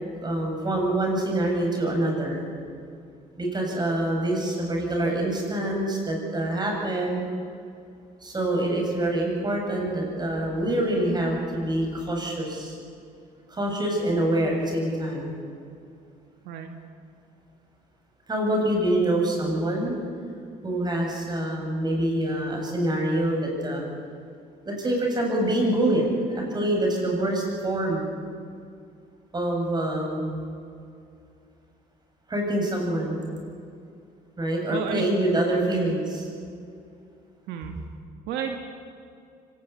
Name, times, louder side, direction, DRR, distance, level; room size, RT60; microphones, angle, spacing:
voice 1, 0.2-2.4 3.4-7.3 8.2-12.8 13.5-15.4 18.3-20.0 20.6-23.8 24.6-28.1 29.3-30.4 32.3-33.2 34.4-36.3, right 1 dB, 25° right, 0 dB, 7.9 m, -25 dB
voice 2, 34.7-35.2 35.6-35.8 37.5-37.8 38.3-38.6, right 7 dB, 85° right, 4 dB, 1.9 m, -31 dB
24.5 x 19.0 x 8.6 m, 2.4 s
cardioid pair, 110°, 17 cm